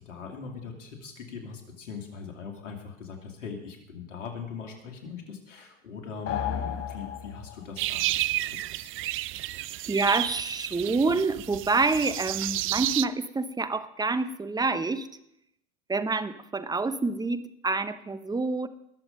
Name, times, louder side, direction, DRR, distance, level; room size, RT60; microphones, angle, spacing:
voice 1, 0.0-8.9, left 6 dB, 85° left, 3 dB, 2.7 m, -41 dB
sound 1, 6.3-7.8, left 8 dB, 40° left, 1.2 m, -33 dB
sound 2, 7.8-13.1, right 16 dB, 35° right, 0.4 m, -31 dB
voice 2, 9.9-15.1 15.9-18.7, right 3 dB, 10° right, 12 dB, 0.8 m, -27 dB
20.5 x 7.2 x 5.3 m, 0.79 s
hypercardioid pair, 85°, 36 cm